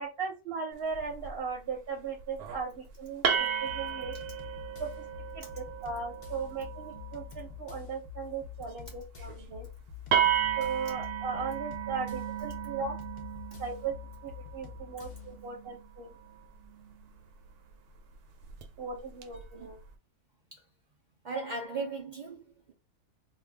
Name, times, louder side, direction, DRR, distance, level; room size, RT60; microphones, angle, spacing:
voice 1, 0.0-4.2 4.8-5.1 5.3-9.7 10.6-13.0 13.6-13.9 14.2-16.2 18.8-19.8, right 5 dB, 55° right, 0.8 m, -37 dB
sound 1, 0.9-1.4 2.2-2.6 3.2-7.6 9.2-9.4 9.7-9.8 10.1-17.2 18.4-18.6 19.2-19.7, right 9 dB, 90° right, 1.1 m, -34 dB
sound 2, 3.7-15.4, left 9 dB, 75° left, 0.4 m, -47 dB
voice 2, 21.2-22.7, right 3 dB, 70° right, 0.4 m, -37 dB
2.6 x 2.3 x 3.3 m
omnidirectional pair, 1.6 m